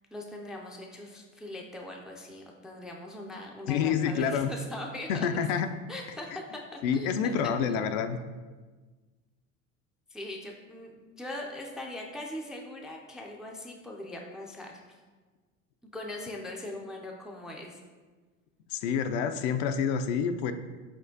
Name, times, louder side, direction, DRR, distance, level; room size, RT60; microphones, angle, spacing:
voice 1, 0.1-5.3 5.9-8.0 10.1-15.0 15.9-17.8, left 1 dB, ahead, 0 dB, 0.3 m, -41 dB
voice 2, 3.7-4.5 5.1-5.7 6.8-8.2 18.7-20.5, left 7 dB, 70° left, 8 dB, 0.5 m, -28 dB
4.4 x 4.3 x 2.7 m, 1.3 s
hypercardioid pair, 90°, 40 cm